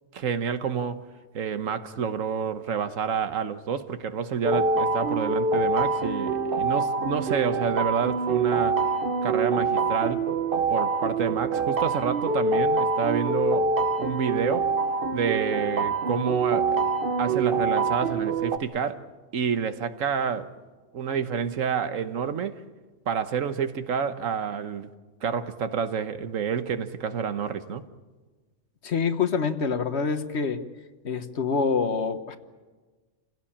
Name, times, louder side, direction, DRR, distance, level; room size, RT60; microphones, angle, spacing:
voice 1, 0.1-1.0 1.3-8.8 9.2-10.3 10.7-13.7 14.0-14.7 15.1-16.8 17.2-19.0 19.3-20.5 20.9-22.6 23.1-24.9 25.2-27.9, right 6 dB, 85° right, 1.5 m, -28 dB
sound 1, 4.4-18.6, right 4 dB, 50° right, 1.2 m, -25 dB
voice 2, 28.8-30.6 31.0-32.4, left 5 dB, 60° left, 1.4 m, -26 dB
28.0 x 17.0 x 8.6 m
omnidirectional pair, 1.3 m